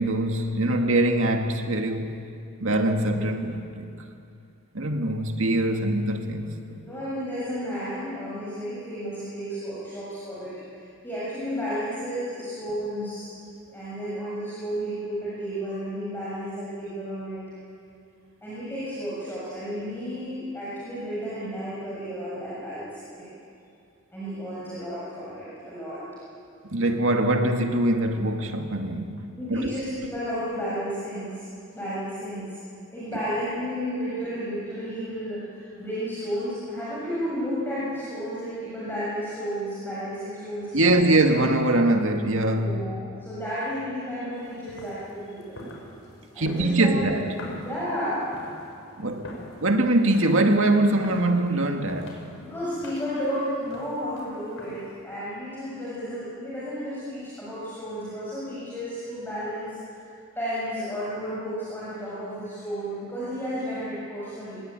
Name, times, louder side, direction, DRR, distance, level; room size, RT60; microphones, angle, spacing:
voice 1, 0.0-2.3 2.6-3.9 4.7-6.8 26.6-29.7 40.7-42.8 46.4-47.5 49.0-52.2, right 1 dB, 70° right, 2.1 m, -23 dB
voice 2, 6.8-10.8 11.0-17.4 18.4-23.3 24.1-26.0 29.4-31.4 31.7-32.5 32.9-41.2 42.6-45.7 46.3-47.0 47.6-48.3 52.4-60.1 60.3-64.6, equal, 10° left, 7.4 m, -32 dB
sound 1, 44.4-55.0, left 1 dB, 65° left, 5.5 m, -44 dB
26.0 x 20.5 x 9.1 m
head